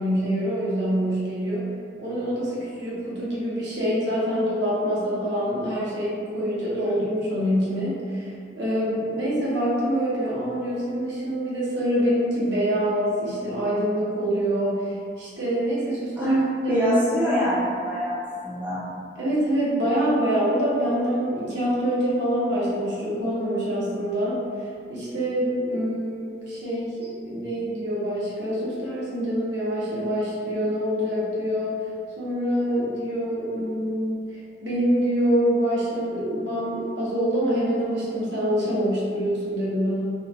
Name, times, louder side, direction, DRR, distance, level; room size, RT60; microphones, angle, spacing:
voice 1, 0.0-1.7 2.0-16.4 16.6-16.9 17.2-17.5 19.2-31.9 32.2-40.0, equal, 70° right, -7 dB, 0.7 m, -25 dB
voice 2, 16.2-18.8, equal, 10° right, -10 dB, 0.4 m, -24 dB
2.8 x 2.1 x 2.5 m, 2.3 s
head